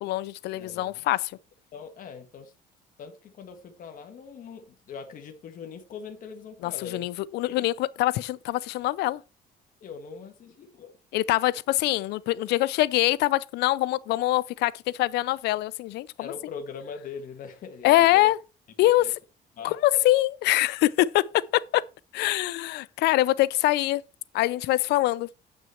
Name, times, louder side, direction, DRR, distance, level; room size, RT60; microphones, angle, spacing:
voice 1, 0.0-1.3 6.6-9.2 11.1-16.3 17.8-18.4 18.8-19.1 19.6-21.8 22.1-24.0 24.3-25.3, left 16 dB, 80° left, 0.5 m, -24 dB
voice 2, 0.5-1.1 1.7-2.5 3.0-7.1 7.5-7.6 9.8-10.9 16.2-18.3 18.8-19.1 19.5-19.8, left 6 dB, 55° left, 1.5 m, -41 dB
8.4 x 6.1 x 4.4 m
cardioid pair, 110°, 17 cm